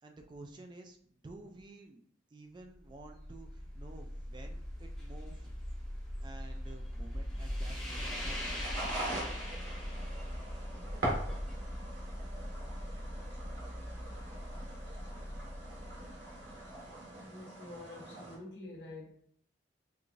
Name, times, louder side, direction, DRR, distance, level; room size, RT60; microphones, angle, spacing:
voice 1, 0.0-2.0 2.3-5.5 6.2-8.6, right 2 dB, 25° right, 4 dB, 0.3 m, -52 dB
sound 1, 2.8-16.9, equal, 5° left, 1.0 m, -41 dB
sound 2, 7.9-18.4, right 1 dB, 85° right, 1.4 m, -42 dB
voice 2, 17.2-19.1, left 2 dB, 70° left, -2 dB, 1.1 m, -47 dB
4.6 x 2.4 x 2.5 m, 0.64 s
head